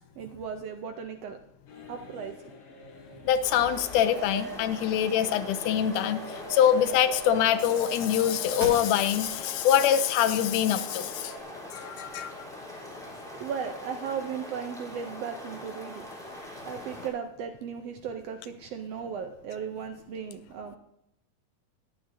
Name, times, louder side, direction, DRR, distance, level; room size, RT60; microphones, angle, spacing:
voice 1, 0.2-1.4 1.9-2.5 13.4-16.1 16.7-20.8, right 7 dB, 80° right, 7 dB, 1.4 m, -36 dB
sound 1, 1.7-11.4, right 2 dB, 60° left, 3.1 m, -44 dB
voice 2, 3.3-11.3 11.7-12.3, left 10 dB, 80° left, 12 dB, 2.2 m, -24 dB
sound 2, 3.4-17.1, left 1 dB, ahead, 3.0 m, -43 dB
sound 3, 8.6-9.4 9.9-10.0 10.5-11.4, right 2 dB, 50° right, 2.8 m, -40 dB
20.0 x 8.7 x 2.7 m, 0.81 s
omnidirectional pair, 3.6 m